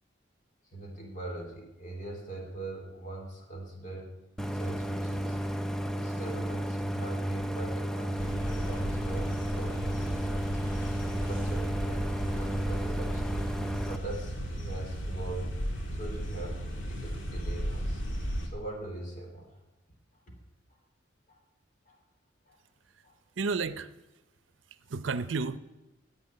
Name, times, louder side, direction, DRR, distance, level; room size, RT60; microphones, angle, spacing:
voice 1, 0.6-4.2 4.5-5.4 5.9-10.6 11.0-13.4 13.9-15.5 15.9-18.0 18.4-19.6 20.1-20.3 20.7-20.8 21.3-21.4 21.8-22.0 22.4-22.6 23.0-23.2, right 2 dB, 45° left, 1 dB, 3.2 m, -41 dB
Idling, 4.4-14.0, equal, 5° left, 0.5 m, -33 dB
sound 1, 8.2-18.5, equal, 75° left, 1.9 m, -35 dB
voice 2, 23.4-23.9 24.9-25.6, right 4 dB, 80° right, 13 dB, 0.6 m, -31 dB
10.5 x 8.4 x 9.9 m, 1.0 s
head